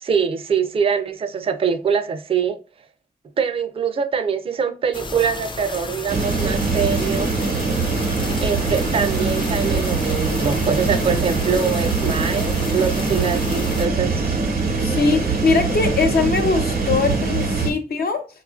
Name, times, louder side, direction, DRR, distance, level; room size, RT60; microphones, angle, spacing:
voice 1, 0.0-2.6 3.4-7.3 8.4-14.4, right 6 dB, 35° right, 0.3 m, -23 dB
sound 1, 4.9-13.9, left 3 dB, 30° left, 0.4 m, -32 dB
sound 2, 6.1-17.7, right 4 dB, 80° right, 0.8 m, -22 dB
voice 2, 14.8-18.3, left 4 dB, 90° left, 0.7 m, -21 dB
4.9 x 2.4 x 2.4 m
wide cardioid pair, 135°, 15 cm